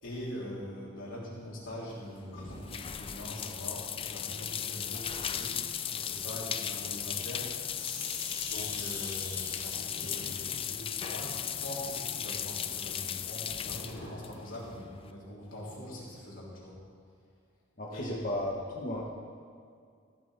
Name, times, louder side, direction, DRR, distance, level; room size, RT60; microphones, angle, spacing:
voice 1, 0.0-5.5 5.8-7.5 8.5-16.8 17.9-18.4, left 1 dB, 90° left, -5 dB, 3.6 m, -43 dB
sound 1, 1.9-15.1, left 9 dB, 30° left, 0.4 m, -37 dB
sound 2, 2.3-7.4 7.7-14.3, left 2 dB, 70° left, 3.1 m, -47 dB
voice 2, 17.8-19.1, left 1 dB, 45° left, -3 dB, 1.4 m, -34 dB
14.5 x 12.0 x 3.4 m, 2.2 s
head